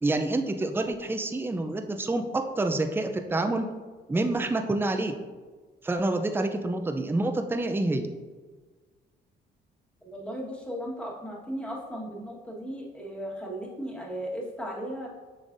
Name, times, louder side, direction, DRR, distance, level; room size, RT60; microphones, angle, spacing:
voice 1, 0.0-3.7 4.1-5.1 5.8-8.1, right 2 dB, 10° right, 6 dB, 0.5 m, -27 dB
voice 2, 10.0-15.1, equal, 5° left, -3 dB, 1.5 m, -36 dB
7.2 x 5.2 x 2.6 m, 1.4 s
cardioid pair, 90°, 20 cm